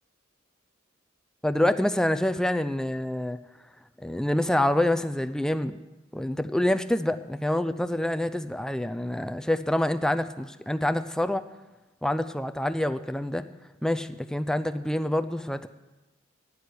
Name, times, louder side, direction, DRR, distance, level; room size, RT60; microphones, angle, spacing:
voice 1, 1.4-3.4 4.0-5.8 6.1-11.4 12.0-13.4 13.8-15.7, left 1 dB, 5° left, 11 dB, 0.5 m, -26 dB
13.0 x 8.6 x 9.7 m, 1.1 s
head